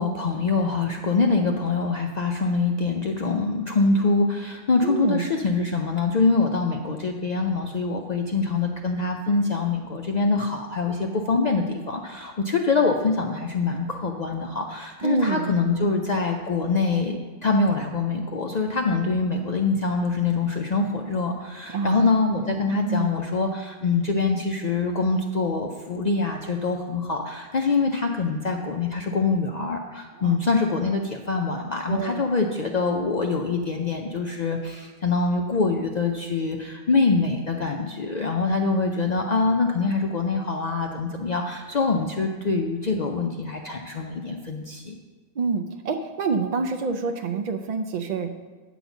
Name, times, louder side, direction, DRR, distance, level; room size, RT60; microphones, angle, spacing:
voice 1, 0.0-17.2 17.4-44.9, left 4 dB, 50° left, 2 dB, 0.5 m, -24 dB
voice 2, 4.8-5.4 15.0-15.5 21.7-22.0 22.8-23.1 30.2-30.4 31.9-32.2 45.4-48.3, right 4 dB, 60° right, 5 dB, 0.4 m, -27 dB
9.2 x 4.0 x 7.0 m, 1.4 s
omnidirectional pair, 1.2 m